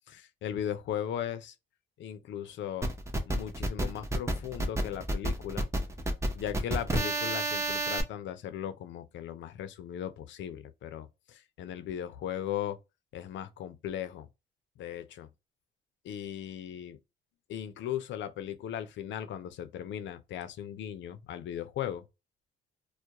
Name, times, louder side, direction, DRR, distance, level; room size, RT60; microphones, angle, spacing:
voice 1, 0.1-1.5 2.0-2.9 3.2-5.7 6.3-12.8 13.1-14.3 14.8-15.3 16.0-17.0 17.5-22.0, left 10 dB, 70° left, 0.5 m, -37 dB
sound 1, 2.8-8.0, right 1 dB, 15° right, 0.6 m, -30 dB
2.3 x 2.1 x 2.7 m
cardioid pair, 90°, 20 cm